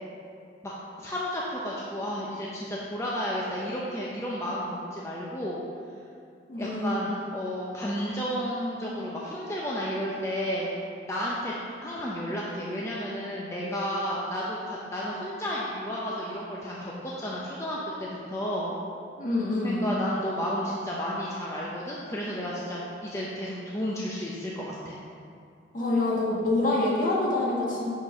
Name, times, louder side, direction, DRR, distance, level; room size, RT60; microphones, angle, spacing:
voice 1, 0.6-5.6 6.6-10.7 11.1-11.5 11.8-18.8 19.6-25.0, equal, 15° left, -6 dB, 0.7 m, -32 dB
voice 2, 6.5-7.0 19.2-19.9 25.7-27.9, left 2 dB, 45° left, -4 dB, 1.6 m, -26 dB
6.1 x 6.0 x 5.4 m, 2.4 s
head